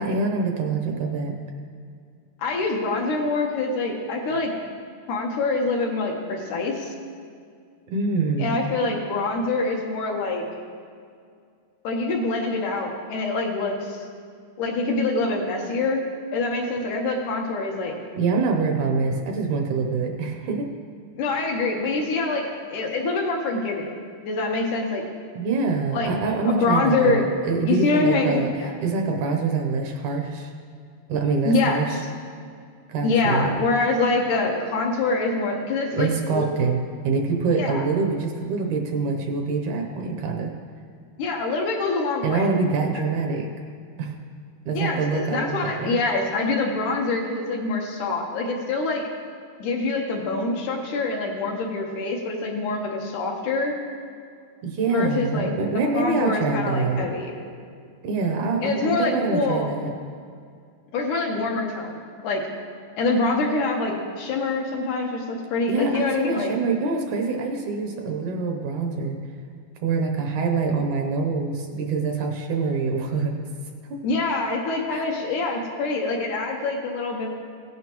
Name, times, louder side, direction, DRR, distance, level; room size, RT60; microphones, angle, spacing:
voice 1, 0.0-1.3 6.4-6.8 7.9-8.6 18.2-20.7 21.3-21.5 25.4-30.5 31.1-32.0 32.9-33.6 35.9-40.5 42.2-43.5 44.0-44.1 44.7-46.0 54.6-57.1 58.0-59.9 65.7-69.2 69.8-73.4 73.9-74.0 74.9-75.1, right 4 dB, 70° right, 3 dB, 2.1 m, -25 dB
voice 2, 2.4-4.5 5.1-6.9 8.4-10.4 11.8-14.0 14.6-16.0 16.3-17.9 21.2-23.9 24.2-25.0 25.9-26.1 26.4-27.2 27.7-28.7 31.5-31.9 33.0-36.5 37.6-37.8 41.2-42.5 42.9-43.0 44.7-49.0 49.6-53.7 54.9-55.5 55.9-57.5 58.6-59.7 60.9-62.5 63.0-66.5 74.0-77.3, left 3 dB, 70° left, 0 dB, 2.5 m, -25 dB
17.0 x 9.3 x 3.0 m, 2.2 s
omnidirectional pair, 3.9 m